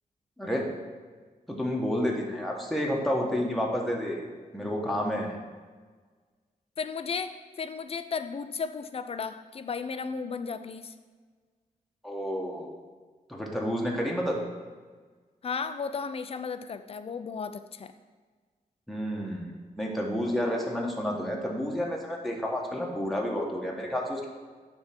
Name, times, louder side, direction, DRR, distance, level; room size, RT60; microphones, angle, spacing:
voice 1, 0.4-0.7 1.5-4.2 4.5-5.4 12.0-12.7 13.3-14.4 18.9-24.3, equal, ahead, -2 dB, 1.2 m, -30 dB
voice 2, 6.8-10.9 15.4-17.9, left 5 dB, 45° left, 10 dB, 0.4 m, -34 dB
9.6 x 3.5 x 5.9 m, 1.5 s
wide cardioid pair, 125°, 14 cm